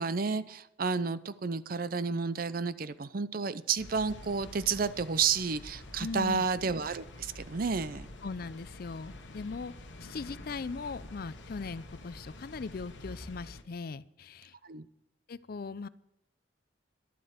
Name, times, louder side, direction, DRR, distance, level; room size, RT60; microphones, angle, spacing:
voice 1, 0.0-8.1 14.6-14.9, right 5 dB, 50° right, 15 dB, 0.6 m, -31 dB
sound 1, 3.8-13.6, left 2 dB, 75° left, 1.2 m, -49 dB
sound 2, 3.9-13.3, equal, 5° right, 2.1 m, -54 dB
voice 2, 6.0-6.4 8.2-9.7 10.0-14.5 15.3-15.9, left 4 dB, 55° left, 17 dB, 0.5 m, -39 dB
12.0 x 12.0 x 5.1 m, 0.80 s
head